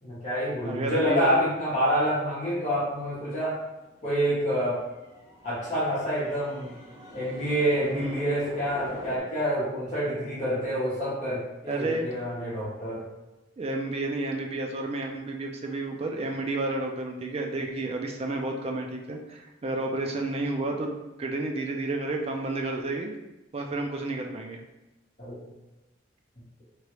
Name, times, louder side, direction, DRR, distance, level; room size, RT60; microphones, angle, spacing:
voice 1, 0.0-3.6 4.0-4.8 5.4-6.7 7.1-13.1 25.2-25.4, equal, 40° left, -9 dB, 1.0 m, -27 dB
voice 2, 0.6-1.3 7.9-8.2 11.7-12.1 13.6-20.9 21.2-23.1 23.5-24.6, right 2 dB, 30° right, 2 dB, 0.3 m, -31 dB
sound 1, 2.2-9.2, equal, 15° right, 0.7 m, -45 dB
3.0 x 2.4 x 2.9 m, 1.0 s
head